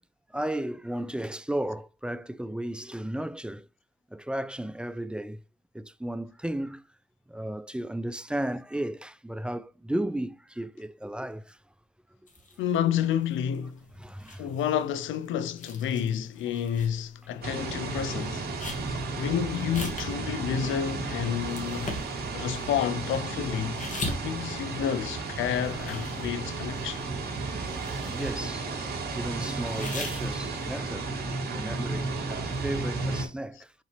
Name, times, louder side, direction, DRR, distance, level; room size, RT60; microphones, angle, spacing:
voice 1, 0.3-3.7 4.1-5.4 5.7-6.8 7.3-11.6 14.0-14.5 19.1-19.2 27.8-28.7 29.2-31.1 31.5-33.8, right 1 dB, 5° right, 0.3 m, -34 dB
sound 1, 12.3-17.7 18.0-25.3 25.5-27.3 27.6-28.8 29.2-30.8, left 2 dB, 40° left, 2.0 m, -41 dB
voice 2, 12.6-13.8 14.4-18.5 19.2-22.0 22.3-23.8 24.2-27.0 31.5-31.6, left 9 dB, 80° left, 0.6 m, -30 dB
sound 2, 17.4-33.3, right 3 dB, 55° right, 2.2 m, -33 dB
7.4 x 4.0 x 3.3 m
cardioid pair, 90°, 20 cm